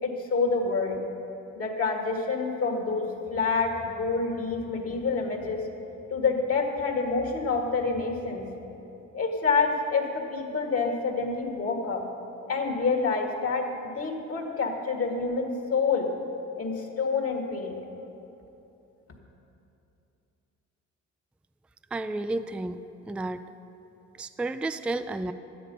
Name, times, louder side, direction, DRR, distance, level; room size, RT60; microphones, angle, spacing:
voice 1, 0.0-1.0 1.6-5.7 6.1-8.5 9.1-12.0 12.5-16.1 16.6-17.8, left 4 dB, 50° left, 2 dB, 1.7 m, -27 dB
voice 2, 21.9-23.5 24.2-25.3, right 2 dB, 5° right, 10 dB, 0.3 m, -32 dB
12.5 x 9.5 x 5.4 m, 2.9 s
cardioid pair, 90°, 30 cm